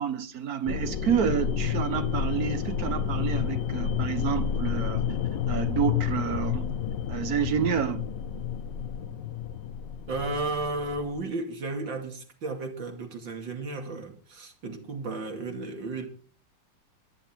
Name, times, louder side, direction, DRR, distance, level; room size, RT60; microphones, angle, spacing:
voice 1, 0.0-5.0 5.5-6.7 7.1-8.1, right 8 dB, 60° right, 1.4 m, -29 dB
sound 1, 0.7-11.2, left 8 dB, 75° left, 1.6 m, -30 dB
voice 2, 10.1-16.1, right 3 dB, 80° right, 3.2 m, -33 dB
24.0 x 10.0 x 4.5 m
omnidirectional pair, 2.0 m